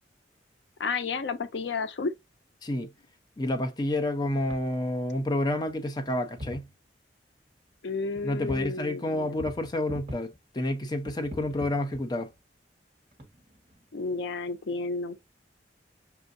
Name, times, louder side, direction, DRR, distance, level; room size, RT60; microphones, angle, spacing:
voice 1, 0.8-2.1 7.8-9.4 13.9-15.2, left 4 dB, 80° left, 0.5 m, -32 dB
voice 2, 3.4-6.7 8.2-12.3, left 1 dB, 25° left, 0.5 m, -29 dB
sound 1, 4.5-4.6 5.2-5.3 5.5-6.1 6.4-6.7 8.1-8.7 9.0-10.4 11.0-12.4 13.1-14.0, left 1 dB, 35° right, 1.2 m, -42 dB
5.5 x 2.6 x 2.5 m
head